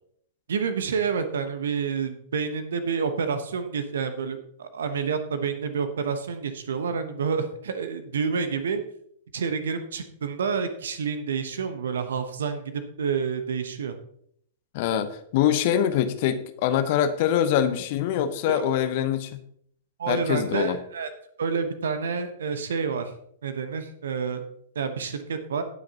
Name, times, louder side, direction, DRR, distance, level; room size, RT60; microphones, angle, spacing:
voice 1, 0.5-8.8 9.3-13.9 18.5-18.6 20.0-21.1 21.4-23.1 23.4-24.4 24.7-25.6, right 6 dB, 60° right, 9 dB, 1.0 m, -28 dB
voice 2, 14.7-19.4 20.1-20.8, left 10 dB, 45° left, 10 dB, 0.9 m, -24 dB
18.0 x 6.3 x 2.9 m, 0.67 s
figure-of-eight pair, 100°, 0 cm